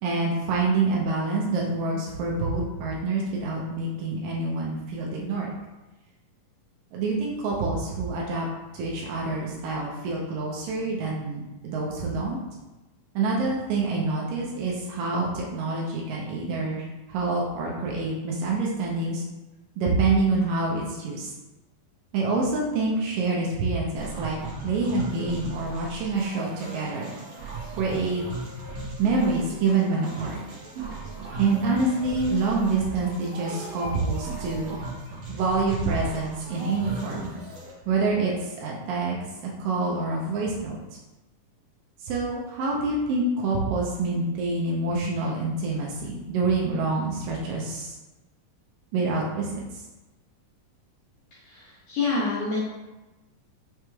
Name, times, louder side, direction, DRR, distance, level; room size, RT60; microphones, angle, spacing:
voice 1, 0.0-5.5 6.9-8.5 8.7-12.4 13.2-19.2 19.8-21.3 22.1-24.4 24.6-27.1 27.8-28.2 29.0-30.4 31.4-34.8 35.3-37.3 37.9-39.2 39.6-40.8 42.0-48.0 48.9-49.8, right 3 dB, 85° right, -3 dB, 2.3 m, -26 dB
sound 1, 24.0-37.7, right 3 dB, 65° right, 1.4 m, -38 dB
voice 2, 51.4-52.6, left 3 dB, 85° left, -7 dB, 1.4 m, -27 dB
5.8 x 2.2 x 3.1 m, 1.1 s
omnidirectional pair, 3.9 m